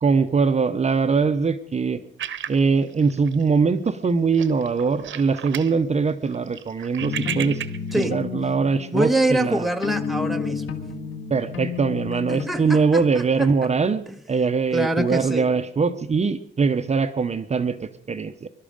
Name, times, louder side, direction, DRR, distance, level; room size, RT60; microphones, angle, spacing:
voice 1, 0.0-2.0 2.5-7.6 8.0-9.7 11.3-18.5, right 5 dB, 35° right, 10 dB, 0.7 m, -22 dB
sound 1, 2.2-3.6 3.9-4.1 4.3-5.7 6.1-8.1, right 10 dB, 80° right, 0.9 m, -33 dB
sound 2, 7.0-12.5, left 6 dB, 75° left, 1.9 m, -31 dB
voice 2, 8.9-10.6 12.3-13.5 14.1-14.2 14.7-15.5, right 1 dB, ahead, 5 dB, 1.0 m, -25 dB
23.5 x 12.0 x 5.1 m, 0.68 s
wide cardioid pair, 150°, 20 cm